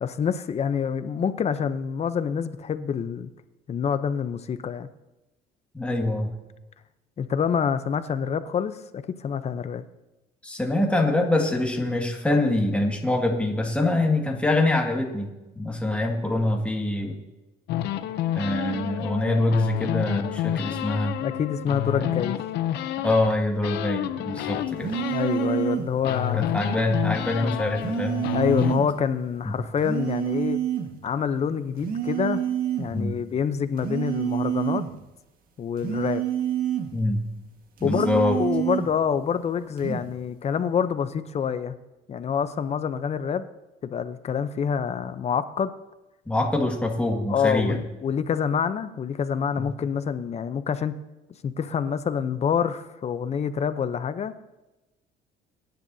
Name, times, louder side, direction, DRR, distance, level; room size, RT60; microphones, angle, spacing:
voice 1, 0.0-3.3 3.7-4.9 7.2-9.8 21.2-22.4 24.5-24.6 25.1-26.5 27.4-27.6 28.3-30.6 31.0-32.4 32.8-34.8 35.6-36.2 37.8-41.8 42.1-43.5 43.8-45.7 47.3-51.0 51.4-54.4, left 7 dB, 40° left, 12 dB, 0.7 m, -27 dB
voice 2, 5.7-6.3 10.4-17.2 18.4-21.2 23.0-24.9 26.3-28.2 29.4-29.5 32.9-33.2 36.9-37.3 37.8-38.4 46.3-47.8 49.6-49.7, left 2 dB, 5° left, 1 dB, 2.0 m, -25 dB
sound 1, 17.7-23.3 23.6-25.8 26.0-28.7, left 12 dB, 80° left, 0.7 m, -29 dB
sound 2, 24.8-26.0 27.8-29.0 29.8-31.0 31.8-33.0 33.8-35.0 35.8-37.0 37.8-39.0 39.8-40.1, right 10 dB, 60° right, 1.7 m, -28 dB
23.0 x 10.5 x 2.8 m, 1.0 s
cardioid pair, 110°, 17 cm